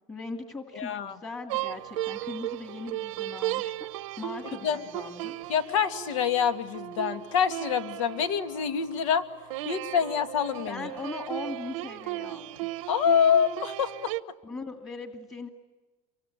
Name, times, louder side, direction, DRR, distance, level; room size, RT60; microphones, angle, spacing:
voice 1, 0.1-3.9 4.2-5.4 10.7-12.7 14.4-15.5, left 3 dB, 15° left, 5 dB, 2.1 m, -39 dB
voice 2, 0.7-1.2 4.6-4.8 5.5-9.2 9.6-10.9 12.9-14.1, left 7 dB, 85° left, 8 dB, 2.5 m, -26 dB
sound 1, 1.5-8.9 9.5-14.2, right 16 dB, 90° right, 0.9 m, -36 dB
28.0 x 24.5 x 8.6 m, 1.3 s
supercardioid pair, 150°, 16 cm